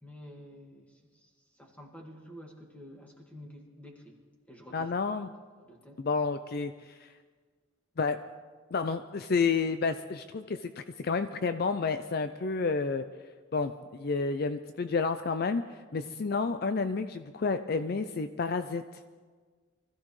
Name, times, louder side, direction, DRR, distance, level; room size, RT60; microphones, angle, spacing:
voice 1, 0.0-1.3 1.5-4.2 4.5-4.9 5.6-6.0 16.0-16.2, equal, 5° left, 0 dB, 1.8 m, -49 dB
voice 2, 4.7-5.3 6.0-6.7 7.0-7.1 8.0-8.2 8.7-13.0 13.5-15.6 15.9-18.8, left 4 dB, 50° left, 10 dB, 0.4 m, -30 dB
24.0 x 15.0 x 3.2 m, 1.5 s
head